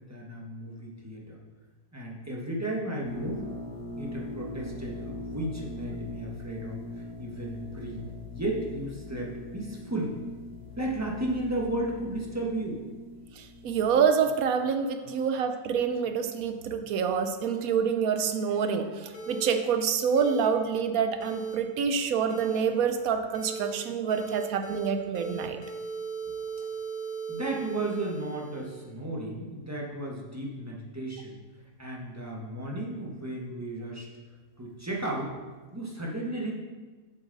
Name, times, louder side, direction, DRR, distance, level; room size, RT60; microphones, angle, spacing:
voice 1, 0.1-1.4 1.9-3.5 4.0-10.1 10.8-12.8 27.3-31.3 31.8-34.1 34.6-35.3 35.7-36.5, right 1 dB, 10° right, -2 dB, 1.2 m, -34 dB
sound 1, 3.0-13.9, left 2 dB, 85° right, 2.3 m, -41 dB
voice 2, 13.4-25.6, right 6 dB, 65° right, 7 dB, 1.0 m, -27 dB
sound 2, 19.1-19.5 20.2-20.5 21.2-21.6 22.3-22.6 23.3-23.7 24.1-24.9 25.1-28.9, right 5 dB, 65° left, 1.2 m, -38 dB
7.1 x 7.0 x 4.0 m, 1.3 s
omnidirectional pair, 1.8 m